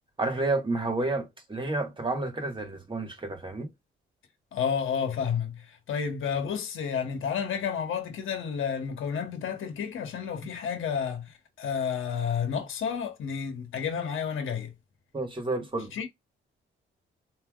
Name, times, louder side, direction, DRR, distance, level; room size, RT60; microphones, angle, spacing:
voice 1, 0.2-3.7 15.1-16.1, right 2 dB, 25° right, 1.5 m, -30 dB
voice 2, 4.5-14.7 15.9-16.1, left 7 dB, 75° left, 1.1 m, -31 dB
3.4 x 2.7 x 2.3 m
cardioid pair, 75°, 21 cm